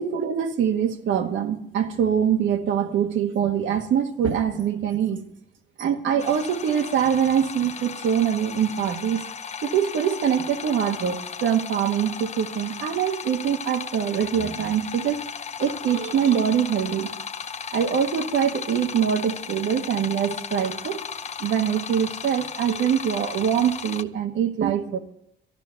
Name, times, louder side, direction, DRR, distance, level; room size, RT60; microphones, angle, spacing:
voice 1, 0.0-5.2 5.8-9.3 9.6-15.2 15.6-17.1 17.7-21.0 21.4-25.0, right 8 dB, 75° right, 1.4 m, -24 dB
sound 1, 6.2-24.0, left 6 dB, 35° left, 0.6 m, -35 dB
13.0 x 11.5 x 5.7 m
cardioid pair, 90°, 20 cm